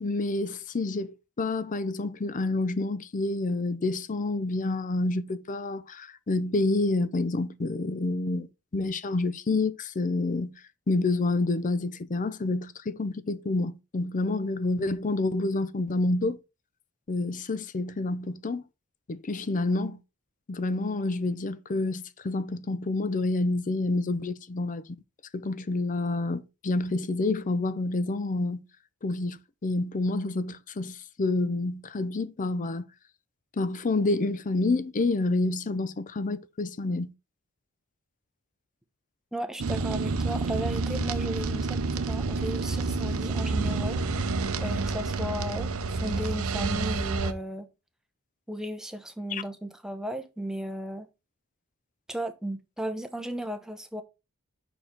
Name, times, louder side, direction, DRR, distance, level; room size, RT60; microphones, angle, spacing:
voice 1, 0.0-8.5 8.7-10.6 10.9-16.4 17.1-18.6 19.1-20.0 20.5-24.8 25.3-28.7 29.0-32.9 33.6-37.1 49.3-49.4, left 2 dB, 35° left, 0.5 m, -28 dB
voice 2, 39.3-41.7 41.9-44.3 44.6-47.7 48.5-51.1 52.1-54.0, right 1 dB, 5° right, 0.8 m, -35 dB
sound 1, 39.6-47.3, right 3 dB, 70° right, 0.7 m, -29 dB
5.9 x 4.6 x 5.0 m
head